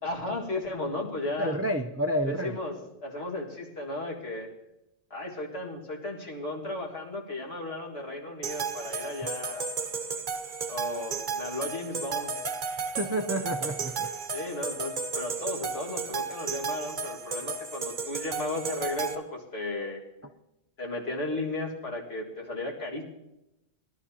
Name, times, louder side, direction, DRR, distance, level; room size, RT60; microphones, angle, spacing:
voice 1, 0.0-1.6 2.3-2.8 3.0-4.5 5.1-9.7 10.7-12.3 14.3-20.0 20.8-23.0, left 2 dB, 65° left, -1 dB, 2.2 m, -35 dB
voice 2, 1.4-2.6 12.9-14.1, equal, 20° right, 4 dB, 0.4 m, -29 dB
sound 1, 8.4-19.1, right 5 dB, 50° right, 1.0 m, -34 dB
20.5 x 11.5 x 2.8 m, 0.91 s
omnidirectional pair, 1.1 m